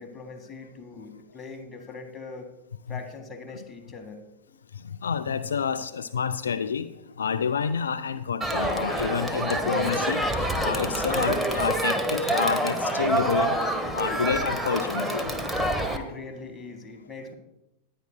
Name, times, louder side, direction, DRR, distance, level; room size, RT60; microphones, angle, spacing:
voice 1, 0.0-2.5 2.9-4.2 15.9-17.4, left 4 dB, 15° left, 2 dB, 1.7 m, -41 dB
voice 2, 5.0-6.9 7.2-10.2 10.6-13.6 13.9-15.3, left 6 dB, 70° left, 11 dB, 0.4 m, -28 dB
Crowd, 8.4-16.0, right 1 dB, 5° right, 1.1 m, -27 dB
19.5 x 9.5 x 2.2 m, 0.91 s
figure-of-eight pair, 90°, 0 cm